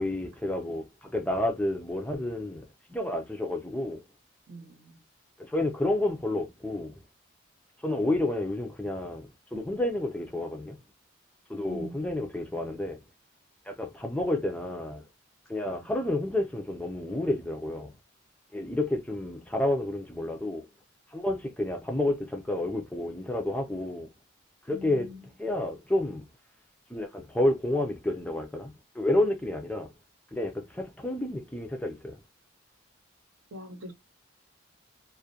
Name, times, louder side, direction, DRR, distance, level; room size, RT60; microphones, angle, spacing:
voice 1, 0.0-4.0 5.4-6.9 7.8-10.8 11.5-13.0 13.7-15.0 15.5-17.9 18.5-20.7 21.1-24.1 24.7-25.1 25.4-26.2 26.9-29.9 30.3-32.2, left 1 dB, 5° left, 0.3 m, -30 dB
voice 2, 4.5-5.0 11.7-11.9 15.7-15.9 24.7-25.2 33.5-33.9, left 1 dB, 80° right, 0.9 m, -43 dB
2.3 x 2.1 x 2.6 m
head